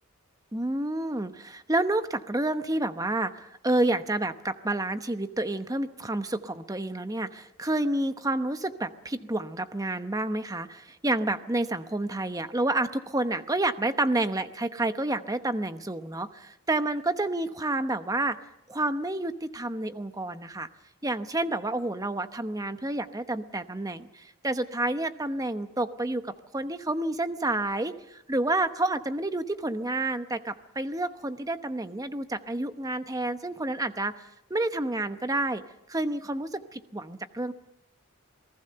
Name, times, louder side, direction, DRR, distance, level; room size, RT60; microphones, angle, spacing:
voice 1, 0.5-18.4 18.7-20.7 21.0-34.2 34.5-35.6 35.9-37.5, right 2 dB, 15° right, 10 dB, 0.9 m, -29 dB
28.0 x 19.0 x 6.8 m, 0.83 s
head